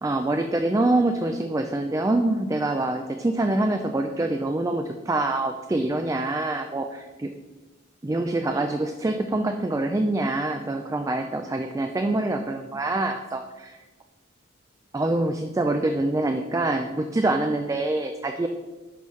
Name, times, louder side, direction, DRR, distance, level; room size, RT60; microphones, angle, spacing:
voice 1, 0.0-7.3 8.0-13.8 14.9-18.5, right 2 dB, 15° right, 5 dB, 0.3 m, -25 dB
11.5 x 5.4 x 3.2 m, 1.2 s
head